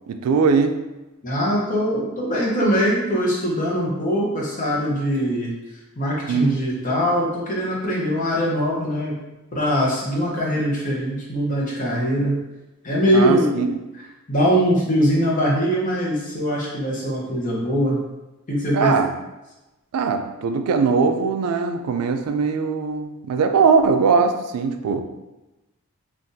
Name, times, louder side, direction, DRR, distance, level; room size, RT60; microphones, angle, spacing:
voice 1, 0.1-0.8 6.3-6.6 13.1-13.8 18.7-19.1 19.9-25.0, right 5 dB, 85° right, 8 dB, 0.3 m, -20 dB
voice 2, 1.2-5.5 6.0-9.2 9.5-12.3 12.8-13.5 14.3-18.0 18.5-18.9, equal, 35° left, -4 dB, 0.8 m, -22 dB
3.8 x 2.4 x 2.6 m, 1.0 s
head